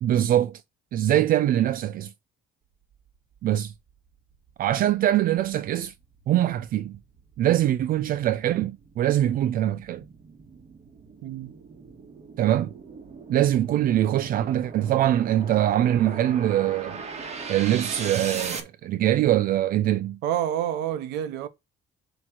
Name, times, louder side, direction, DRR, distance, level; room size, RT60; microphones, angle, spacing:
voice 1, 0.0-0.6 0.9-2.1 3.4-3.7 4.6-5.9 6.3-7.0 7.4-10.0 12.4-12.7 13.3-17.0 17.5-20.2, right 12 dB, 55° right, 0.4 m, -23 dB
sound 1, 3.9-4.0 4.5-18.6, right 5 dB, 40° right, 1.5 m, -39 dB
voice 2, 11.2-11.5 20.2-21.5, right 10 dB, 90° right, 0.9 m, -28 dB
7.5 x 3.1 x 6.0 m
cardioid pair, 110°, 17 cm